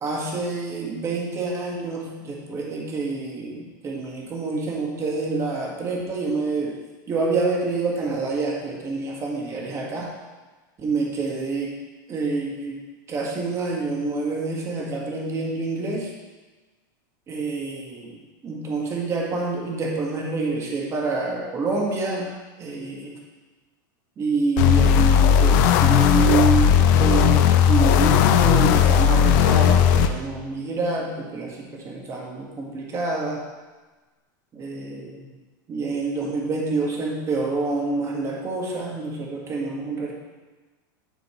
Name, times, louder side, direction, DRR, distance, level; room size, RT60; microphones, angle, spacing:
voice 1, 0.0-6.8 7.1-10.1 10.8-11.7 12.1-12.8 13.1-16.1 17.3-18.2 18.4-22.3 22.6-23.1 24.2-27.4 27.7-33.4 34.5-35.2 35.7-40.1, right 3 dB, 25° right, -2 dB, 1.6 m, -27 dB
sound 1, 24.6-30.1, left 8 dB, 60° left, 0.6 m, -16 dB
10.5 x 4.3 x 4.3 m, 1.3 s
supercardioid pair, 135°, 11 cm